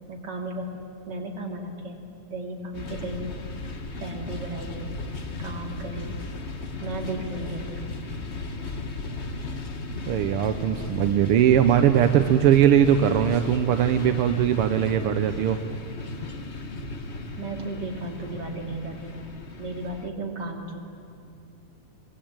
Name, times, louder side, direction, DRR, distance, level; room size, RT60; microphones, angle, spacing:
voice 1, 0.1-2.0 2.3-3.3 4.0-4.9 5.4-6.2 6.8-7.9 17.4-19.3 19.6-20.8, right 2 dB, 35° right, 1 dB, 3.2 m, -35 dB
sound 1, 2.7-20.1, left 2 dB, 70° left, 0.6 m, -36 dB
voice 2, 10.1-15.6, right 10 dB, 70° right, 8 dB, 1.4 m, -20 dB
25.0 x 22.0 x 8.8 m, 2.7 s
omnidirectional pair, 3.3 m